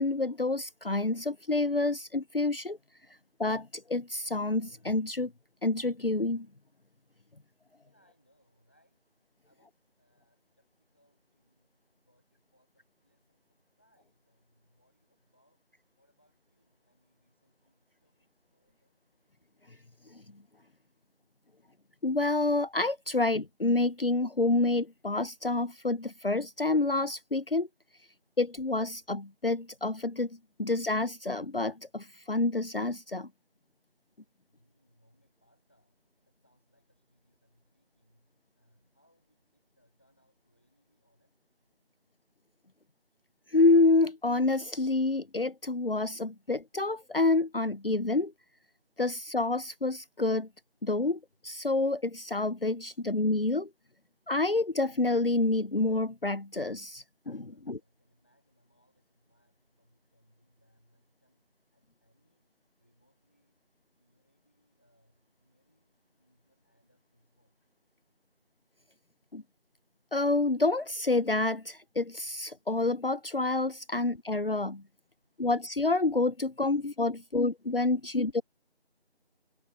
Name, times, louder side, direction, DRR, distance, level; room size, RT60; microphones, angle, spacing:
voice 1, 0.0-2.8 3.4-5.3 5.6-6.5 22.0-27.7 28.4-33.3 43.5-48.3 49.0-50.5 50.8-53.7 54.3-57.8 69.3-69.4 70.1-74.8 75.4-78.4, left 2 dB, 60° left, 0.8 m, -28 dB
voice 2, 7.8-9.0 9.4-15.6 16.0-19.0 34.5-41.3 57.4-62.5 62.8-63.6 63.9-67.6 78.0-78.1, equal, 10° left, 7.7 m, -72 dB
figure-of-eight pair, 180°, 32 cm